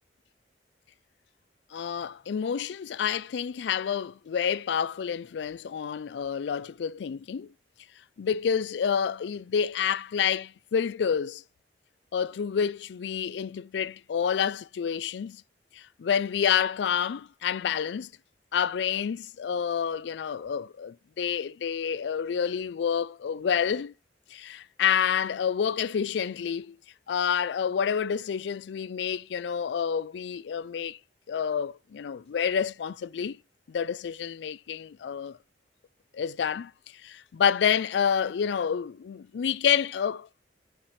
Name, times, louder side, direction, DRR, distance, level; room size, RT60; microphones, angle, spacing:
voice 1, 1.7-7.5 8.2-11.4 12.1-15.4 15.7-18.1 18.5-23.9 24.3-26.8 27.1-31.0 31.3-33.4 33.7-35.4 36.1-36.7 37.0-40.3, left 7 dB, 75° left, 0.4 m, -28 dB
10.0 x 5.8 x 3.2 m
head